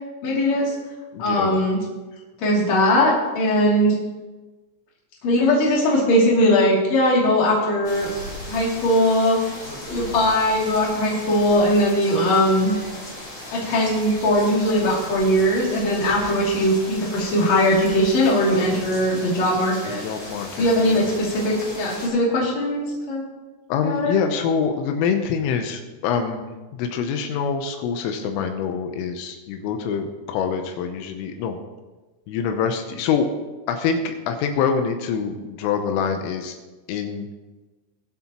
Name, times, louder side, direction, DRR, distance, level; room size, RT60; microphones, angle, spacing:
voice 1, 0.2-0.7 1.2-1.8 2.4-3.9 5.2-8.1 8.5-9.4 9.9-12.7 13.5-20.0 20.6-23.2 23.8-24.2, left 1 dB, 40° left, -4 dB, 3.3 m, -20 dB
voice 2, 1.1-1.6 20.0-21.1 23.7-31.6 32.3-33.3 33.7-36.6 36.9-37.3, left 6 dB, 85° left, 5 dB, 3.4 m, -25 dB
sound 1, 7.8-22.1, left 1 dB, 20° left, 2.7 m, -37 dB
21.5 x 8.1 x 3.0 m, 1.2 s
omnidirectional pair, 5.8 m